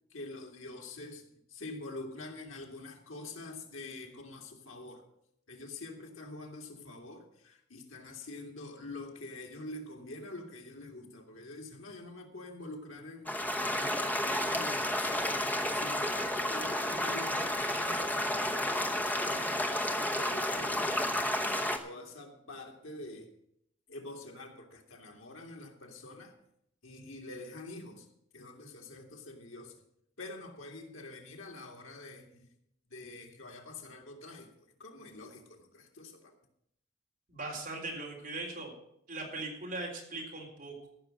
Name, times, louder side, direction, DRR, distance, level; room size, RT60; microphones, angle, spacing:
voice 1, 0.1-5.0 5.5-21.2 21.5-23.3 23.9-26.3 26.8-28.1 28.3-29.8 30.2-32.5 32.9-36.3, left 2 dB, 85° left, 2 dB, 2.3 m, -46 dB
sound 1, 13.3-21.8, left 1 dB, 10° left, 0.9 m, -31 dB
voice 2, 37.3-38.7 39.1-40.9, right 2 dB, 40° right, -1 dB, 3.7 m, -39 dB
14.5 x 6.3 x 7.6 m, 0.74 s
head